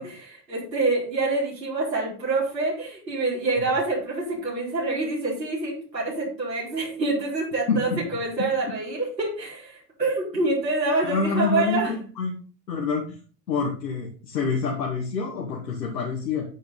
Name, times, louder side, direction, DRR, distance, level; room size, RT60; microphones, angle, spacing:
voice 1, 0.0-11.9, right 2 dB, 85° right, -5 dB, 4.8 m, -26 dB
voice 2, 7.7-8.0 11.0-12.3 12.7-13.0 13.5-16.5, left 4 dB, 75° left, -3 dB, 2.5 m, -27 dB
10.0 x 8.6 x 4.1 m, 0.40 s
figure-of-eight pair, 75°, 49 cm